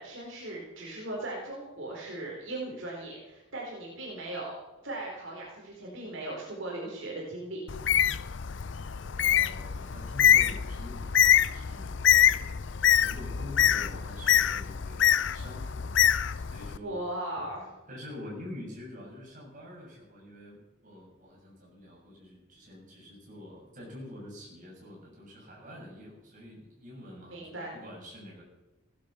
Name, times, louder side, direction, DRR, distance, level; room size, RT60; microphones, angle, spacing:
voice 1, 0.0-4.5 4.8-7.6 16.8-17.6 27.3-27.7, right 1 dB, 70° right, -3 dB, 4.3 m, -38 dB
Bird, 7.7-16.8, left 9 dB, 60° left, 0.5 m, -25 dB
voice 2, 9.1-12.6 12.9-15.9 16.4-17.4 17.9-28.4, left 1 dB, 40° right, -3 dB, 7.1 m, -46 dB
16.5 x 11.5 x 7.1 m, 1.1 s
head